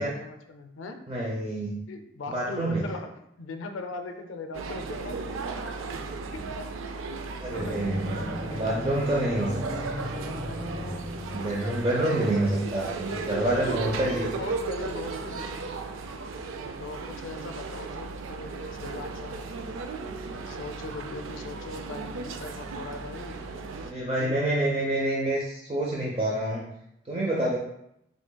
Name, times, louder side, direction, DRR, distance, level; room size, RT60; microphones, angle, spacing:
voice 1, 0.0-1.0 1.9-5.8 6.3-6.6 7.4-7.9 8.5-8.7 13.1-13.9 14.2-15.7 16.8-19.5 20.5-23.5 23.8-24.5, left 3 dB, 85° left, 7 dB, 0.4 m, -40 dB
voice 2, 1.1-1.8 2.3-2.8 7.4-8.2 8.5-10.2 11.3-14.3 23.8-26.7 27.1-27.6, right 1 dB, 30° right, -4 dB, 0.5 m, -27 dB
sound 1, 4.5-23.9, right 4 dB, 85° right, 0.4 m, -36 dB
sound 2, 7.5-11.8, equal, 50° right, 1.3 m, -35 dB
4.9 x 3.8 x 2.2 m, 0.80 s
head